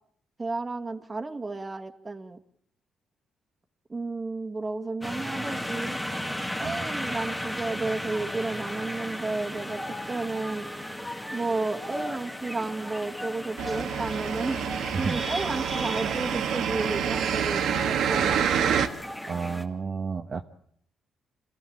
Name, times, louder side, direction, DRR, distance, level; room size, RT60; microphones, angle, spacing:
voice 1, 0.4-2.4 3.9-6.0 6.6-10.7 11.3-18.8, right 3 dB, 25° right, 4 dB, 2.1 m, -32 dB
sound 1, 5.0-19.6, left 1 dB, 5° left, 2.2 m, -36 dB
sound 2, 13.6-18.9, right 8 dB, 75° right, 1.6 m, -27 dB
voice 2, 19.3-20.4, right 5 dB, 45° right, 3 dB, 1.3 m, -31 dB
26.0 x 16.0 x 8.8 m, 0.68 s
cardioid pair, 90°, 0 cm